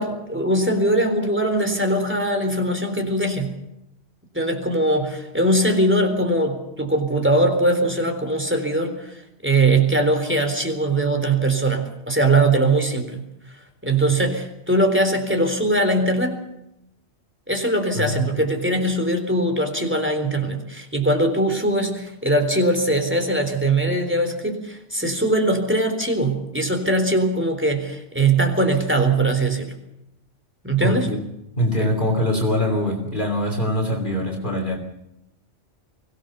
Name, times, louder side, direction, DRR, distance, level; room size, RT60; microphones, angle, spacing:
voice 1, 0.0-3.5 4.3-13.2 13.8-16.3 17.5-29.7 30.6-31.1 31.8-31.9, right 2 dB, 10° right, 5 dB, 3.9 m, -21 dB
voice 2, 30.8-31.2 31.6-34.8, left 1 dB, 40° left, 0 dB, 3.2 m, -23 dB
24.0 x 17.0 x 7.1 m, 0.86 s
omnidirectional pair, 1.2 m